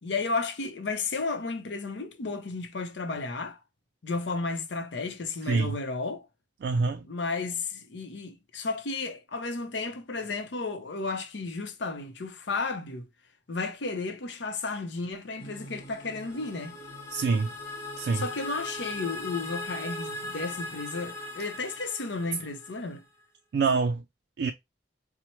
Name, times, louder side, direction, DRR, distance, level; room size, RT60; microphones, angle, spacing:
voice 1, 0.0-3.6 4.0-6.3 7.1-13.1 13.5-16.8 18.1-23.0, left 3 dB, 80° left, 0.7 m, -33 dB
voice 2, 5.5-5.8 6.6-7.0 17.1-17.5 18.0-18.2 23.5-24.0 24.4-24.5, right 4 dB, 65° right, 0.3 m, -25 dB
sound 1, 15.4-21.9, right 1 dB, 55° left, 1.2 m, -51 dB
sound 2, 15.8-23.0, left 2 dB, 15° left, 0.9 m, -39 dB
4.4 x 2.1 x 2.9 m
head